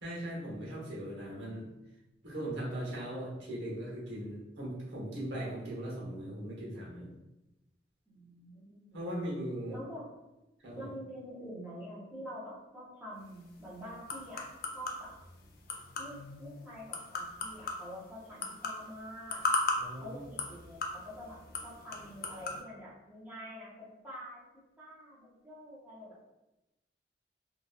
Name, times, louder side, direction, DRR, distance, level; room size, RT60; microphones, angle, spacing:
voice 1, 0.0-1.8 2.2-7.1 8.9-9.8 10.6-10.9 19.7-20.2, right 1 dB, 90° right, -6 dB, 1.0 m, -39 dB
voice 2, 8.1-9.0 9.7-10.0 10.8-14.5 14.7-15.1 16.0-19.4 20.0-24.4 24.8-26.2, equal, 10° right, -8 dB, 0.7 m, -46 dB
sound 1, 13.2-22.6, left 3 dB, 55° left, 0.4 m, -38 dB
2.7 x 2.3 x 2.3 m, 0.97 s
head